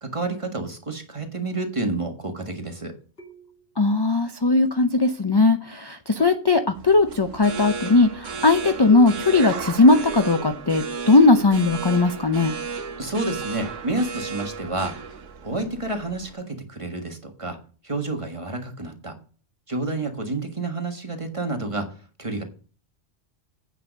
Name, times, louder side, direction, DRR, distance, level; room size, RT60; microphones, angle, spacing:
voice 1, 0.0-2.9 13.0-14.9 15.4-17.6 17.8-19.1 19.7-21.9 22.2-22.4, right 2 dB, 25° right, 4 dB, 1.6 m, -29 dB
sound 1, 3.2-3.7 5.0-5.3 6.2-6.8 7.6-8.1 8.9-9.4 10.0-11.7 12.8-13.2 14.6-14.9, right 3 dB, 50° left, 2.6 m, -44 dB
voice 2, 3.8-12.5, left 3 dB, 30° left, 8 dB, 0.5 m, -18 dB
sound 2, 6.7-16.3, right 5 dB, 75° right, 1.4 m, -34 dB
9.0 x 6.1 x 5.2 m, 0.38 s
omnidirectional pair, 1.3 m